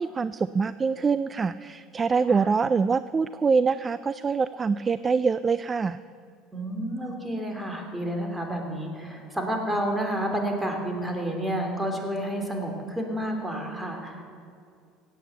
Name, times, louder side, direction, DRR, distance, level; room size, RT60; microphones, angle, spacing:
voice 1, 0.0-6.0, right 5 dB, 25° right, 15 dB, 0.3 m, -25 dB
voice 2, 6.5-14.2, right 1 dB, 10° right, 3 dB, 2.8 m, -30 dB
16.5 x 8.6 x 8.0 m, 2.3 s
supercardioid pair, 110°, 0 cm